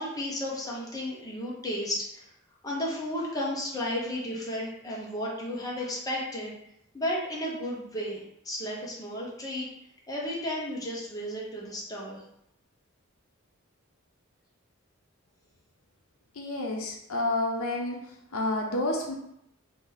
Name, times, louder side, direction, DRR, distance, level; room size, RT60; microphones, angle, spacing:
voice 1, 0.0-2.3 2.6-6.5 6.9-9.7 10.1-12.2, left 1 dB, 15° left, -4 dB, 0.8 m, -33 dB
voice 2, 16.4-18.0 18.3-19.1, left 2 dB, 75° left, 0 dB, 0.6 m, -29 dB
2.8 x 2.6 x 3.8 m, 0.78 s
head